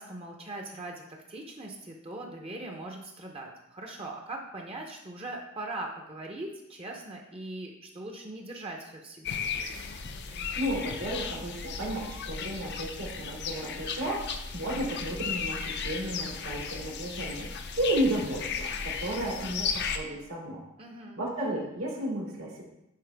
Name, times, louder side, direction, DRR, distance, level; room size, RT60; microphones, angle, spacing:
voice 1, 0.0-9.4 20.8-21.2, right 2 dB, 25° right, 1 dB, 0.7 m, -40 dB
sound 1, 9.2-20.0, left 6 dB, 50° left, 0.5 m, -35 dB
voice 2, 10.2-20.6 21.2-22.6, right 1 dB, 80° right, -3 dB, 2.5 m, -33 dB
10.0 x 4.3 x 3.4 m, 0.86 s
head